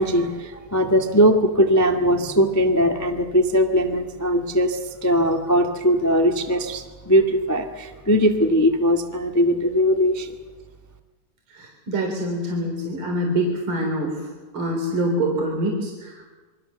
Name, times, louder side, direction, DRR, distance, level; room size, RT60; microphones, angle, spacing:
voice 1, 0.0-10.3, equal, 15° left, 4 dB, 0.6 m, -20 dB
voice 2, 11.5-14.3 14.5-16.3, right 1 dB, 40° right, 1 dB, 4.4 m, -25 dB
28.0 x 23.5 x 7.0 m, 1.3 s
omnidirectional pair, 3.8 m